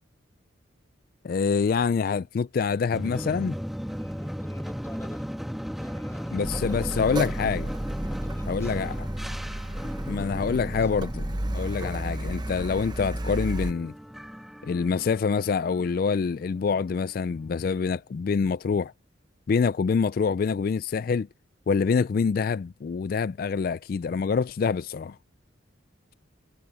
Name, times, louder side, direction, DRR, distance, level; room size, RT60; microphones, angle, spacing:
voice 1, 1.2-3.6 6.3-7.7 8.5-9.1 10.1-11.2 11.5-13.9 14.6-18.9 19.5-21.3 21.7-25.2, left 5 dB, 45° left, 0.3 m, -26 dB
sound 1, 2.9-17.0, equal, ahead, 1.6 m, -36 dB
voice 2, 3.9-5.3 5.8-7.4 8.0-8.9 9.8-11.0, left 1 dB, 15° left, 7.4 m, -47 dB
Car, 6.4-13.7, right 1 dB, 20° right, 0.8 m, -33 dB
head